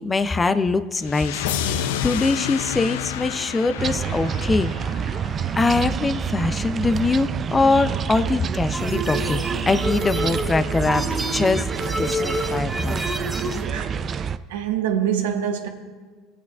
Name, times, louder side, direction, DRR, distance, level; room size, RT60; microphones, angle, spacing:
voice 1, 0.0-4.7 5.5-11.7 12.0-13.1, left 3 dB, 20° left, 0.4 m, -23 dB
sound 1, 1.0-6.0, left 10 dB, 80° left, 0.4 m, -30 dB
sound 2, 3.8-14.4, right 7 dB, 35° right, 0.4 m, -27 dB
sound 3, 8.7-13.6, equal, 5° right, 2.2 m, -28 dB
voice 2, 13.7-15.7, right 9 dB, 85° right, 1.1 m, -26 dB
21.5 x 8.5 x 2.3 m
supercardioid pair, 90°, 0 cm